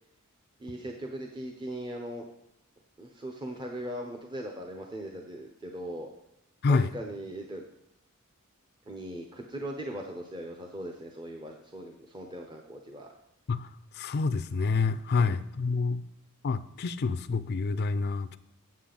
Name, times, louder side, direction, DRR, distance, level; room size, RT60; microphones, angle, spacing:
voice 1, 0.6-2.3 3.0-6.1 6.7-7.6 8.9-13.1 15.1-15.3, right 1 dB, 20° right, 2 dB, 0.6 m, -39 dB
voice 2, 13.5-16.1 16.4-18.4, left 4 dB, 45° left, 12 dB, 0.4 m, -28 dB
8.5 x 7.7 x 3.8 m, 0.81 s
head